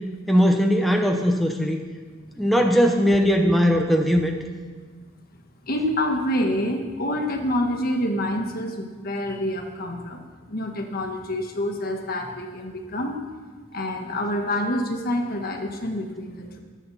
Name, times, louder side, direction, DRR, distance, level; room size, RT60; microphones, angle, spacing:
voice 1, 0.3-1.8 2.4-4.3, equal, ahead, 2 dB, 0.8 m, -19 dB
voice 2, 5.6-13.2 13.7-16.6, left 1 dB, 45° left, 4 dB, 1.6 m, -27 dB
23.5 x 9.0 x 4.2 m, 1.5 s
head